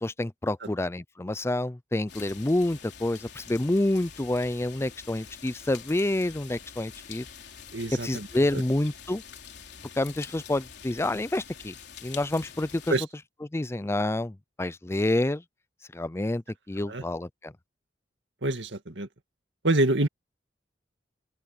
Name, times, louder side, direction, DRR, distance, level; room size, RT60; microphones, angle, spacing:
voice 1, 0.0-7.3 8.0-9.2 10.0-11.7 12.0-12.9 13.5-15.4 15.9-17.5, left 1 dB, 15° left, 0.5 m, -28 dB
sound 1, 2.1-13.0, left 7 dB, 65° left, 3.8 m, -46 dB
voice 2, 7.7-8.3 12.9-13.0 16.8-17.0 18.4-19.1 19.6-20.1, right 2 dB, 70° right, 2.3 m, -26 dB
open air
head